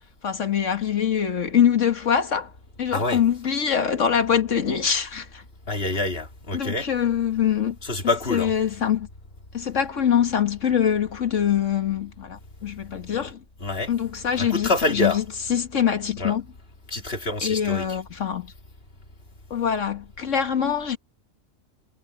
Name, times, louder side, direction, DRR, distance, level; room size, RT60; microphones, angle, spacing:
voice 1, 0.2-2.5 2.8-5.4 6.5-7.8 8.3-9.1 9.5-13.4 13.9-15.2 15.5-16.4 17.4-18.5 19.5-21.0, left 8 dB, 70° left, 1.9 m, -24 dB
voice 2, 5.7-6.9 7.8-8.5 13.6-13.9 14.4-15.2 16.2-16.4 16.9-18.0, left 2 dB, 50° left, 3.0 m, -26 dB
omnidirectional pair, 1.3 m